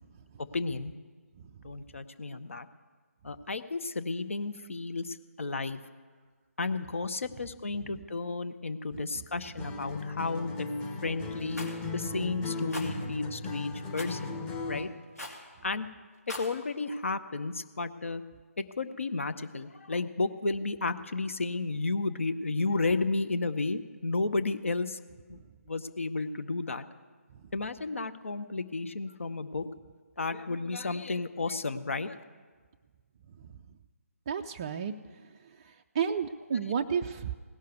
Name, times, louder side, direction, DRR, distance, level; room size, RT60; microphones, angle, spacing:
voice 1, 0.4-0.9 1.6-2.7 3.2-5.8 6.6-10.7 11.0-11.6 11.9-14.4 14.6-14.9 15.6-15.9 16.3-18.2 18.6-25.0 25.3-25.4 25.7-26.8 27.5-29.6 30.2-32.2 36.6-36.7, left 3 dB, 55° left, 11 dB, 0.7 m, -32 dB
Acoustic guitar, 9.6-15.0, left 3 dB, 10° left, 1.0 m, -36 dB
Rattle, 11.5-11.8 12.7-12.9 14.0-14.2 15.2-15.4 16.1-16.5, left 1 dB, 75° left, 2.6 m, -40 dB
voice 2, 34.3-34.9 36.0-37.4, right 7 dB, 20° right, 5 dB, 0.3 m, -31 dB
17.5 x 6.5 x 9.4 m, 1.5 s
figure-of-eight pair, 145°, 8 cm